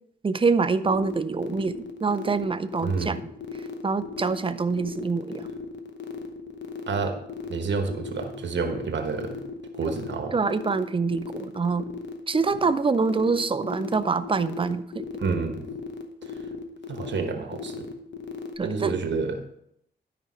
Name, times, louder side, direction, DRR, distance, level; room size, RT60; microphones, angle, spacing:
voice 1, 0.2-3.2 3.8-5.5 10.3-11.9 12.3-15.1 18.6-19.0, right 4 dB, 30° right, 12 dB, 0.5 m, -25 dB
sound 1, 0.8-18.5, left 5 dB, 80° left, 0.9 m, -38 dB
voice 2, 2.8-3.3 6.9-7.2 7.5-9.4 9.7-10.4 15.2-15.7 16.2-16.3 16.9-17.9 18.6-19.4, right 4 dB, 80° right, 5 dB, 1.2 m, -29 dB
12.0 x 5.1 x 4.4 m, 0.75 s
wide cardioid pair, 100°, 18 cm